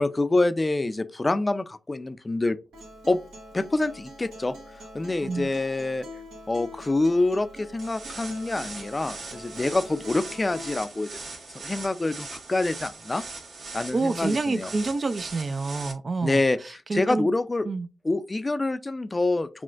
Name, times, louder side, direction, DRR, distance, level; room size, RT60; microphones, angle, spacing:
voice 1, 0.0-2.6 3.1-3.2 3.5-4.5 4.9-6.0 6.5-11.2 11.5-13.2 13.7-14.7 16.2-17.7 18.0-19.5, left 2 dB, 25° left, 0.4 m, -26 dB
Acoustic guitar, 2.7-10.7, equal, 85° right, 1.4 m, -45 dB
sound 1, 7.8-15.9, right 3 dB, 60° right, 1.2 m, -40 dB
voice 2, 13.9-16.4 16.9-17.3 17.6-17.9, right 3 dB, 40° right, 0.4 m, -27 dB
5.9 x 2.1 x 2.5 m
supercardioid pair, 45°, 0 cm